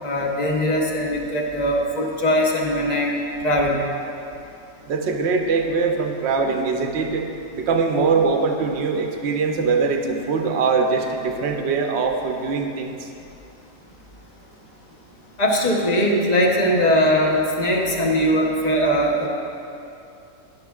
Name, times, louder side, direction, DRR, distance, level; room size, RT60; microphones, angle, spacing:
voice 1, 0.0-3.1 3.4-3.9 15.4-19.3, equal, 35° left, -1 dB, 0.9 m, -20 dB
voice 2, 4.9-13.1, right 4 dB, 55° right, 3 dB, 0.9 m, -22 dB
10.5 x 10.0 x 2.4 m, 2.7 s
omnidirectional pair, 1.5 m